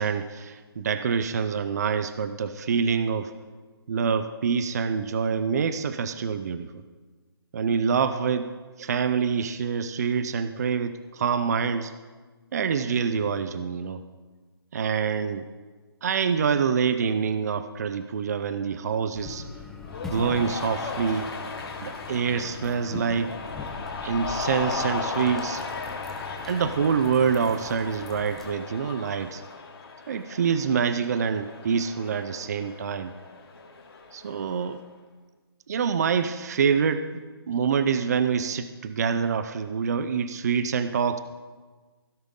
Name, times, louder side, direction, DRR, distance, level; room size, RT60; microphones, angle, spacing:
voice 1, 0.0-3.3 3.9-6.7 7.5-8.5 8.8-11.9 12.5-14.0 14.7-15.4 16.0-19.5 20.0-21.3 21.8-23.3 24.0-25.6 26.4-29.4 30.1-33.1 34.1-34.8 35.7-41.2, right 6 dB, 40° right, 12 dB, 0.5 m, -26 dB
sound 1, 19.1-28.5, left 3 dB, 5° left, 0.8 m, -41 dB
Cheering, 19.9-34.7, left 4 dB, 65° left, 2.8 m, -36 dB
16.5 x 10.0 x 3.7 m, 1.4 s
hypercardioid pair, 165°, 13 cm